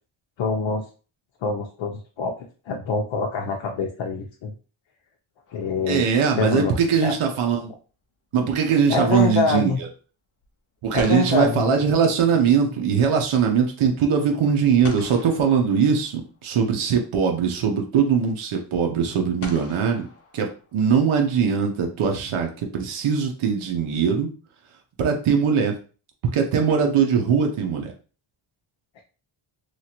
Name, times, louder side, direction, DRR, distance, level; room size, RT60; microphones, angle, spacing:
voice 1, 0.4-0.8 1.4-2.3 2.7-4.5 5.5-6.0 6.4-6.7 7.0-7.1 8.9-9.8 10.9-11.6, left 4 dB, 70° left, 2 dB, 0.6 m, -25 dB
sound 1, 5.5-6.3 10.4-10.5 10.9-12.7 14.8-16.4 17.8-17.9 19.4-21.0, left 3 dB, 30° left, 0.6 m, -42 dB
voice 2, 5.9-7.7 8.3-9.7 10.8-20.1 20.3-24.3 25.0-25.7 26.3-27.9, right 6 dB, 80° right, 3 dB, 0.8 m, -21 dB
3.0 x 2.4 x 2.8 m, 0.36 s
wide cardioid pair, 120°, 48 cm